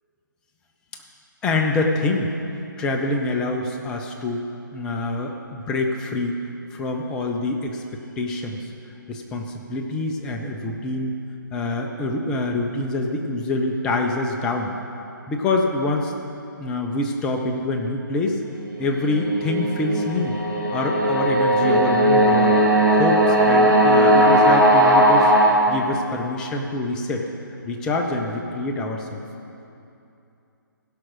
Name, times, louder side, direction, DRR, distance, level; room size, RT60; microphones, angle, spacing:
voice 1, 1.4-2.3 2.8-4.4 4.7-6.3 6.7-8.7 9.1-11.2 11.5-14.7 15.3-16.1 16.6-18.4 18.8-20.4 20.7-22.6 22.9-25.3 25.7-27.2 27.6-29.2, left 2 dB, 5° left, 2 dB, 0.4 m, -25 dB
sound 1, 18.9-25.5, right 1 dB, 75° right, 2.0 m, -17 dB
16.0 x 6.0 x 6.2 m, 2.7 s
figure-of-eight pair, 140°, 11 cm